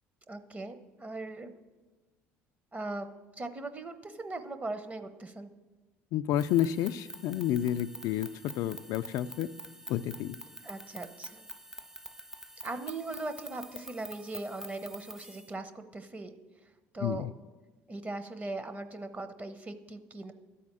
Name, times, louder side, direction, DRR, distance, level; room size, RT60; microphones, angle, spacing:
voice 1, 0.3-1.5 2.7-3.1 3.4-5.5 10.6-11.5 12.6-16.4 16.9-17.3 17.9-20.3, right 2 dB, 25° right, 10 dB, 0.8 m, -39 dB
voice 2, 6.1-9.5 9.9-10.4 17.0-17.3, left 11 dB, 70° left, 11 dB, 0.3 m, -30 dB
sound 1, 6.3-15.5, right 1 dB, 5° right, 0.4 m, -47 dB
12.0 x 4.2 x 7.5 m, 1.2 s
supercardioid pair, 75°, 6 cm